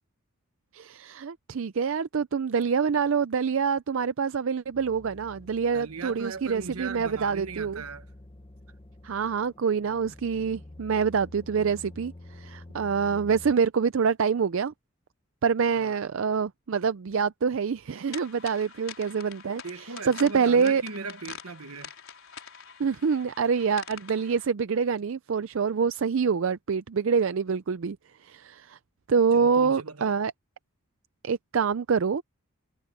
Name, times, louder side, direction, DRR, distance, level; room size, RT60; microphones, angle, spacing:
voice 1, 0.7-7.8 9.0-14.7 15.4-19.6 20.0-20.8 22.8-28.8 29.1-30.3 31.2-32.2, right 6 dB, 60° right, 0.4 m, -26 dB
sound 1, 4.7-13.5, left 1 dB, 25° left, 0.9 m, -48 dB
voice 2, 5.7-8.1 15.7-16.0 19.6-21.9 29.3-30.2, right 4 dB, 80° right, 1.2 m, -38 dB
sound 2, 18.1-24.5, left 7 dB, 65° left, 4.7 m, -45 dB
head